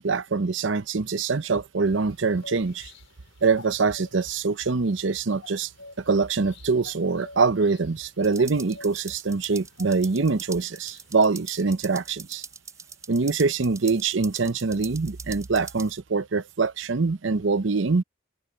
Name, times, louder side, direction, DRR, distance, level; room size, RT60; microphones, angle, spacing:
voice 1, 0.0-2.9 3.4-5.7 6.0-12.4 13.1-18.0, right 4 dB, 75° right, 0.7 m, -24 dB
sound 1, 1.9-11.7, left 3 dB, 85° left, 4.3 m, -50 dB
sound 2, 8.2-15.9, right 5 dB, 15° right, 2.5 m, -43 dB
open air
head